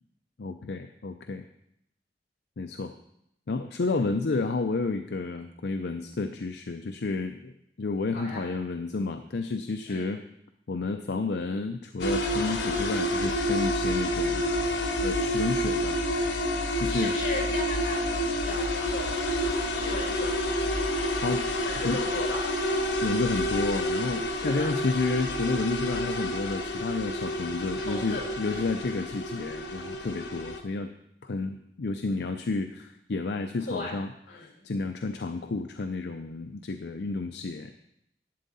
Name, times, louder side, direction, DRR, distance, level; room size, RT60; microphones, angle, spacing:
voice 1, 0.4-1.4 2.6-2.9 3.5-7.5 7.8-10.2 10.7-14.5 15.0-16.0 16.3-16.5 16.7-17.1 21.1-21.4 21.8-22.0 23.0-30.9 31.2-37.7, left 3 dB, 75° left, 7 dB, 0.5 m, -31 dB
voice 2, 8.1-8.5 9.9-10.1 16.9-19.3 19.7-20.3 21.6-22.5 24.4-25.0 27.8-28.7 33.6-34.0 34.3-34.6, left 2 dB, 50° left, -1 dB, 4.5 m, -37 dB
sound 1, 12.0-30.6, left 1 dB, 90° left, 1.1 m, -29 dB
11.5 x 8.4 x 4.1 m, 0.78 s
head